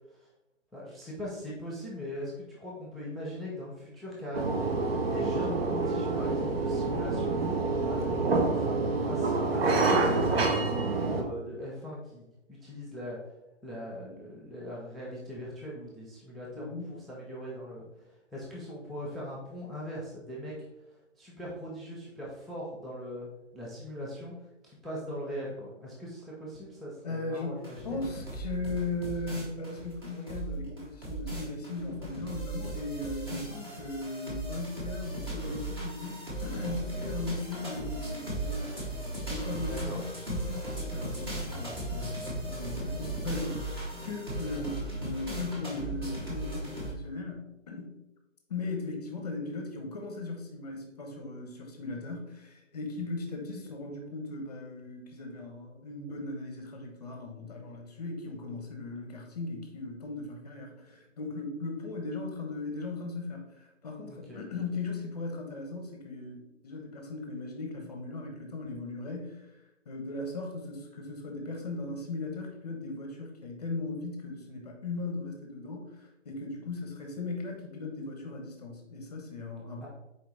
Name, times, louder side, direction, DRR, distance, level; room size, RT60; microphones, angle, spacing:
voice 1, 0.7-7.4 7.8-8.1 8.5-13.2 13.6-20.7 21.2-27.9 39.6-40.1 44.4-44.6 64.1-64.4 79.8-79.9, equal, ahead, -5 dB, 0.3 m, -40 dB
sound 1, 4.3-11.2, right 3 dB, 50° right, 0.7 m, -27 dB
voice 2, 16.5-16.9 27.0-38.9 39.3-43.7 44.0-48.0 48.5-69.4 69.9-79.9, left 3 dB, 30° left, 2 dB, 0.8 m, -38 dB
sound 2, 27.6-46.9, right 1 dB, 20° right, 1.0 m, -37 dB
4.2 x 3.9 x 3.3 m, 0.92 s
hypercardioid pair, 160°, 38 cm